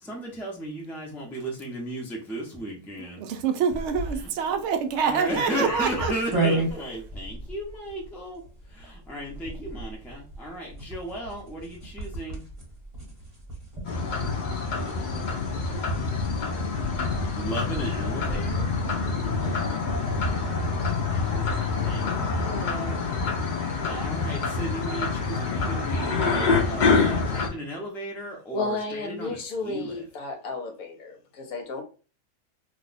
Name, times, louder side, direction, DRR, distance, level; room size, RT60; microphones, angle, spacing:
voice 1, 0.0-3.2 3.5-3.6 4.1-4.3 4.9-8.4 8.7-12.5 17.1-18.6 21.0-23.0 23.9-30.0, right 1 dB, ahead, 0.5 m, -35 dB
voice 2, 3.2-6.1, right 6 dB, 70° right, 0.7 m, -26 dB
sound 1, 3.7-18.6, right 2 dB, 20° right, 1.2 m, -36 dB
sound 2, 13.8-27.5, left 4 dB, 90° left, 0.4 m, -26 dB
voice 3, 22.4-22.7 28.5-31.8, left 3 dB, 65° left, 1.2 m, -33 dB
2.7 x 2.3 x 4.0 m
omnidirectional pair, 1.7 m